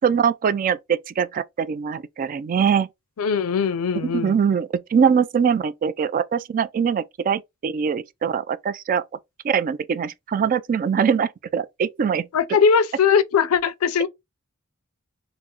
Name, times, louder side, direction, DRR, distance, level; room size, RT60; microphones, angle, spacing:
voice 1, 0.0-2.9 4.0-9.0 9.4-12.3, right 7 dB, 40° right, 0.3 m, -22 dB
voice 2, 3.2-4.4 12.3-14.1, left 6 dB, 75° left, 0.4 m, -20 dB
4.5 x 2.0 x 2.9 m
head